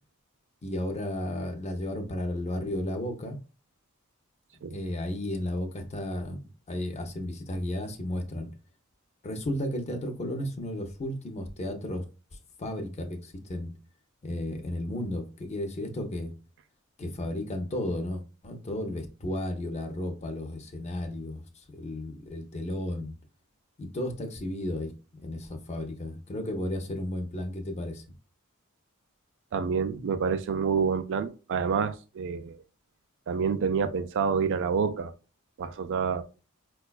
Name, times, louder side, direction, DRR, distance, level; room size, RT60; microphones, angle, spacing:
voice 1, 0.6-3.4 4.7-8.5 9.2-12.0 12.6-13.7 14.2-16.3 17.0-23.2 23.8-24.9 25.2-28.0, left 1 dB, 30° left, 0.5 m, -33 dB
voice 2, 29.5-32.6 33.3-35.1 35.6-36.2, right 6 dB, 60° right, 0.3 m, -28 dB
4.7 x 2.2 x 2.2 m
head